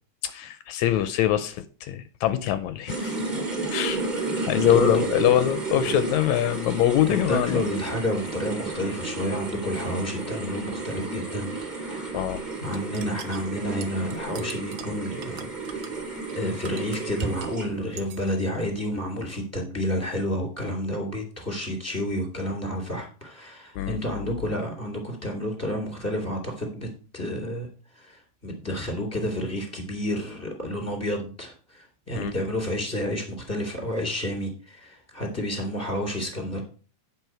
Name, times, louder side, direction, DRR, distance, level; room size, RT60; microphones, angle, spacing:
voice 1, 0.2-3.2 3.7-4.0 4.5-7.7 12.1-12.4 23.8-24.0 32.1-32.3, left 12 dB, 80° left, 12 dB, 1.9 m, -24 dB
sound 1, 2.9-18.0, right 3 dB, 15° right, 1.9 m, -32 dB
voice 2, 4.6-5.3 5.9-6.0 7.1-12.2 12.6-15.8 16.4-26.9 27.1-27.7 27.9-36.6, equal, 5° left, 1 dB, 2.3 m, -30 dB
sound 2, 12.7-17.6 18.0-18.4, right 8 dB, 90° right, 1.0 m, -43 dB
9.1 x 5.9 x 4.6 m, 0.38 s
omnidirectional pair, 3.4 m